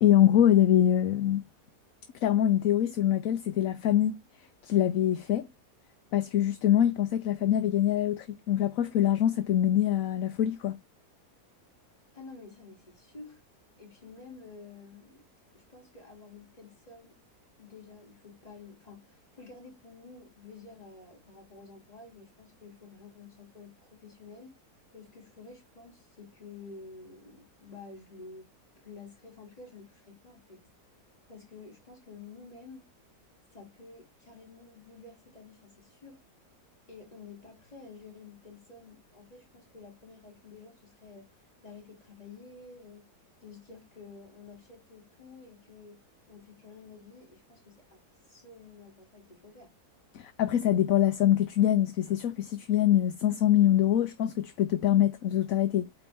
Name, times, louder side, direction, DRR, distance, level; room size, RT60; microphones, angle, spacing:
voice 1, 0.0-1.4 2.2-4.2 4.6-5.5 6.1-10.8 50.1-55.9, left 11 dB, 65° left, 1.0 m, -24 dB
voice 2, 12.1-13.4 13.8-15.3 15.5-17.2 17.6-24.5 24.9-28.5 28.8-30.6 31.3-32.8 33.5-36.2 36.9-41.3 41.6-43.1 43.4-46.0 46.3-48.0 48.3-49.7, left 4 dB, 20° left, 3.2 m, -50 dB
8.5 x 4.1 x 3.6 m
omnidirectional pair, 1.7 m